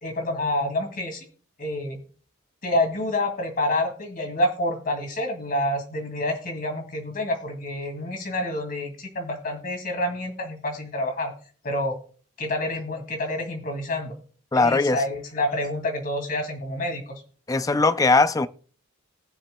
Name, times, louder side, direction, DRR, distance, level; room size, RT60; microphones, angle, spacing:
voice 1, 0.0-1.3 1.6-2.0 2.6-11.3 11.6-11.9 12.4-14.1 14.5-17.2, left 1 dB, 40° left, 2.3 m, -28 dB
voice 2, 14.5-15.0 17.5-18.5, left 3 dB, 15° left, 0.3 m, -20 dB
19.5 x 7.1 x 2.2 m
head